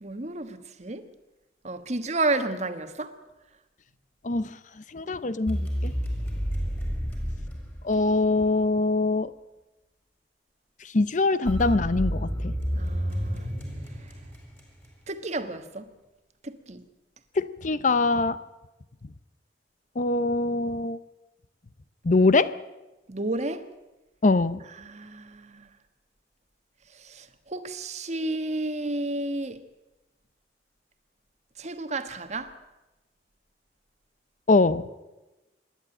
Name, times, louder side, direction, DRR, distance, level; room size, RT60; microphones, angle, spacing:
voice 1, 0.0-1.1 1.6-3.1 12.7-13.5 15.1-15.9 16.4-16.8 23.1-23.6 24.8-25.7 26.9-29.6 31.6-32.5, right 2 dB, 40° right, 1.4 m, -31 dB
voice 2, 4.2-4.6 4.9-5.9 7.8-9.3 10.8-12.5 17.4-18.4 20.0-21.0 22.0-22.5 24.2-24.6 34.5-34.9, left 3 dB, 45° left, 0.6 m, -23 dB
sound 1, 5.5-8.5 11.5-14.9, equal, 10° left, 5.2 m, -30 dB
26.5 x 11.0 x 8.9 m
head